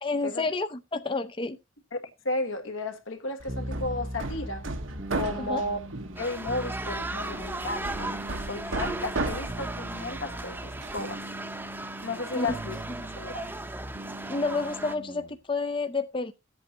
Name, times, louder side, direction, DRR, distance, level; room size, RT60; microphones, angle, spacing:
voice 1, 0.0-1.6 5.4-5.6 12.3-12.6 13.0-13.1 14.3-16.3, left 3 dB, 25° left, 0.5 m, -30 dB
voice 2, 1.9-4.7 5.1-5.8 6.2-11.2 12.0-12.7 13.2-13.5, left 2 dB, 80° left, 1.6 m, -33 dB
Hammer, 3.4-11.2, right 2 dB, 80° right, 1.2 m, -36 dB
sound 1, 3.5-15.3, right 1 dB, 40° right, 0.9 m, -41 dB
sound 2, 6.2-15.0, right 2 dB, 10° right, 0.7 m, -37 dB
15.0 x 8.1 x 2.8 m
head